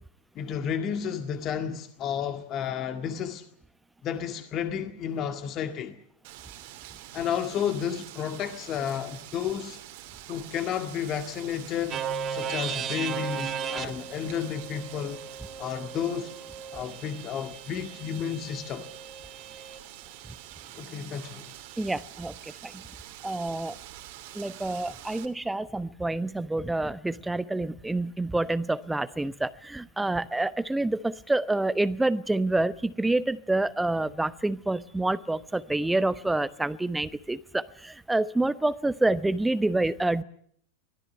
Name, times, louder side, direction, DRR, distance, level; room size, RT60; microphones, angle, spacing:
voice 1, 0.4-3.4 4.0-6.0 7.1-9.8 10.3-15.2 15.6-16.3 16.7-18.9 20.8-21.5, left 8 dB, 35° left, 2.0 m, -32 dB
Wind, 6.2-25.3, right 14 dB, 50° right, 2.5 m, -46 dB
sound 1, 11.9-19.8, right 7 dB, 25° right, 1.5 m, -36 dB
voice 2, 21.8-22.3 22.6-22.8 23.2-23.7 24.3-40.2, right 2 dB, 5° right, 1.0 m, -27 dB
24.0 x 17.0 x 9.9 m
figure-of-eight pair, 90°, 0 cm